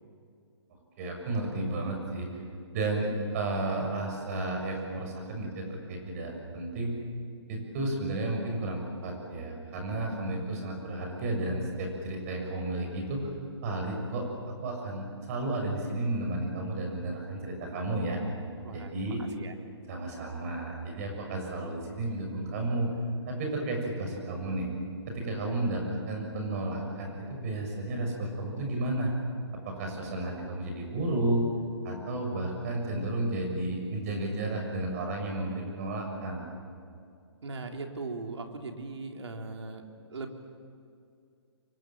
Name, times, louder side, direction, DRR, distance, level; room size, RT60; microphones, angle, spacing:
voice 1, 1.0-2.3 2.7-6.9 7.5-13.3 13.6-14.2 14.6-18.2 18.7-19.2 19.9-22.9 23.3-24.7 25.1-29.1 29.6-31.4 31.8-36.5, right 2 dB, 35° right, 2 dB, 6.7 m, -32 dB
voice 2, 18.6-19.5 37.4-39.8 40.1-40.3, right 3 dB, 80° right, 3 dB, 3.6 m, -39 dB
29.0 x 25.0 x 7.5 m, 2.4 s
hypercardioid pair, 165°, 14 cm